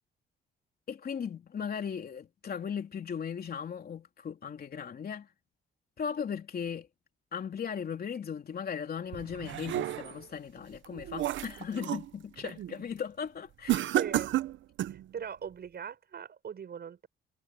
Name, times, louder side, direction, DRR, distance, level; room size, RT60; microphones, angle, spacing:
voice 1, 0.9-5.3 6.0-6.9 7.3-13.9, left 7 dB, 50° left, 3.4 m, -37 dB
sound 1, 9.1-10.3 10.7-12.1 12.5-12.8 13.7-15.0, right 13 dB, 75° right, 0.9 m, -32 dB
voice 2, 13.9-14.4 14.9-17.1, right 7 dB, 55° right, 7.3 m, -40 dB
cardioid pair, 90°, 20 cm